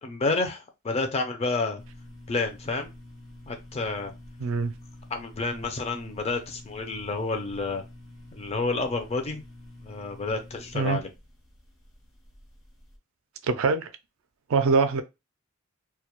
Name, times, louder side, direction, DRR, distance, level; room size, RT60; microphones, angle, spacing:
voice 1, 0.0-1.8 2.3-2.9 3.5-4.1 5.1-7.8 8.3-9.4 9.8-11.1, left 3 dB, 30° left, 0.4 m, -29 dB
sound 1, 1.8-13.0, left 1 dB, 65° left, 0.8 m, -48 dB
voice 2, 4.4-4.7 10.7-11.0 13.5-13.9 14.5-15.0, right 4 dB, 70° right, 0.4 m, -23 dB
2.2 x 2.0 x 2.8 m
head